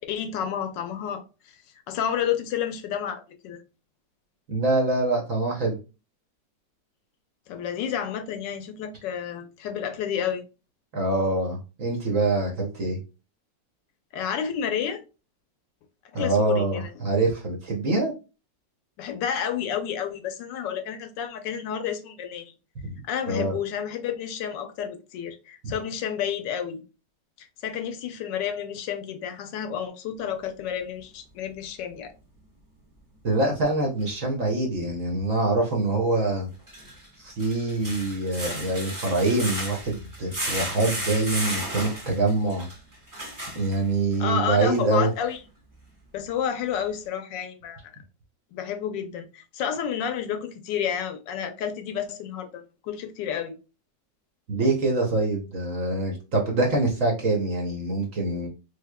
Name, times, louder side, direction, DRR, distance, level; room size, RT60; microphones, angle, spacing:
voice 1, 0.0-1.6 1.9-3.6 7.5-10.4 14.1-15.0 16.1-16.9 19.0-22.5 23.0-26.8 27.4-32.1 44.2-45.4 46.1-47.8 48.5-53.5, left 8 dB, 80° left, 1.2 m, -30 dB
voice 2, 4.5-5.8 10.9-13.0 16.1-18.1 23.3-23.6 25.6-25.7 33.2-36.5 37.2-42.7 43.5-45.1 54.5-58.5, right 2 dB, 55° right, 1.0 m, -25 dB
sound 1, 34.0-34.1 36.5-44.2 44.7-44.8 45.3-45.4, right 1 dB, 15° right, 0.6 m, -34 dB
3.4 x 3.4 x 2.2 m
omnidirectional pair, 2.0 m